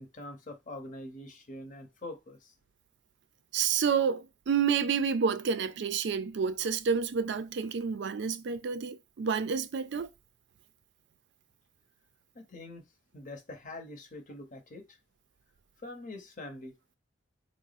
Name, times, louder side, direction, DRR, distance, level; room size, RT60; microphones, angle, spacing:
voice 1, 0.0-2.5 12.3-12.9 13.1-15.0 15.8-17.0, left 2 dB, 45° left, 0.8 m, -44 dB
voice 2, 3.5-10.1, right 6 dB, 65° right, 0.4 m, -29 dB
3.5 x 2.0 x 4.0 m
head